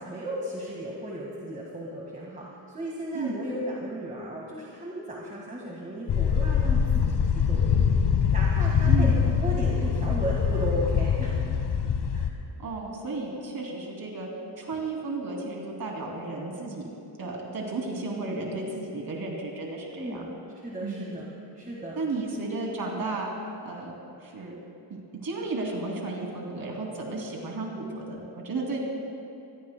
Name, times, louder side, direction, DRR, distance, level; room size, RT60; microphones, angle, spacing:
voice 1, 0.0-2.5 2.7-7.0 7.3-8.0 8.3-9.1 9.4-11.4 12.1-12.3 19.9-21.3 21.5-22.0, right 1 dB, 20° right, -3 dB, 1.7 m, -35 dB
sound 1, 6.1-12.3, left 7 dB, 65° left, 1.3 m, -23 dB
voice 2, 8.8-9.2 12.6-14.3 14.6-16.9 17.2-20.2 20.8-21.1 21.9-23.3 23.6-23.9 24.2-24.5 24.9-28.8, right 3 dB, 50° right, -1 dB, 2.8 m, -33 dB
25.5 x 17.0 x 2.2 m, 2.6 s
wide cardioid pair, 140°, 44 cm